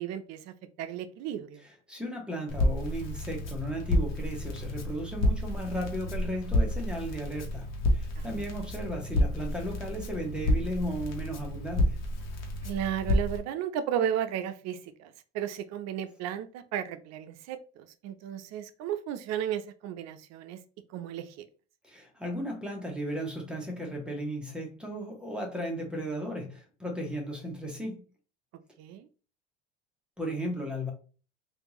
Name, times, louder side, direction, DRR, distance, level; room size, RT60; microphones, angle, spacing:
voice 1, 0.0-1.6 8.2-8.6 12.6-20.6 20.9-21.5 28.8-29.1, right 10 dB, 55° right, 0.5 m, -34 dB
voice 2, 1.9-12.0 21.8-28.0 30.2-30.9, equal, 5° right, 1.1 m, -35 dB
Crackle, 2.5-13.4, left 1 dB, 55° left, 1.2 m, -30 dB
3.4 x 2.6 x 3.0 m
supercardioid pair, 95°, 31 cm